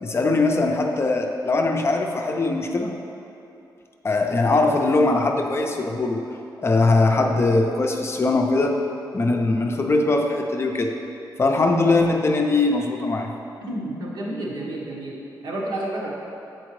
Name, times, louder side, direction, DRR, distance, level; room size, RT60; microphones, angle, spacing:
voice 1, 0.0-3.0 4.0-6.2 6.6-8.8 9.1-10.9 11.4-13.3, left 3 dB, 35° left, 2 dB, 0.5 m, -21 dB
voice 2, 13.6-16.1, right 1 dB, 70° right, -4 dB, 1.1 m, -30 dB
7.5 x 4.3 x 3.1 m, 2.8 s
cardioid pair, 105°, 8 cm